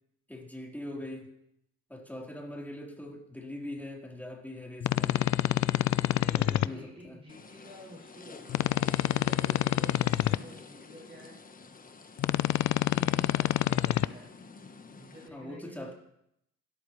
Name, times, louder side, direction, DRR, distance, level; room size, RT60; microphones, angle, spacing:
voice 1, 0.3-1.3 1.9-5.3 6.3-7.2 15.3-15.9, left 1 dB, 5° left, -1 dB, 4.2 m, -42 dB
sound 1, 4.8-6.7 8.5-10.4 12.2-14.1, left 13 dB, 65° left, 0.6 m, -27 dB
voice 2, 6.0-11.4 12.6-14.3 14.9-15.9, equal, 20° right, -7 dB, 6.8 m, -50 dB
sound 2, 7.3-15.3, left 4 dB, 30° left, 1.3 m, -50 dB
27.5 x 13.5 x 3.3 m, 0.77 s
cardioid pair, 90°, 30 cm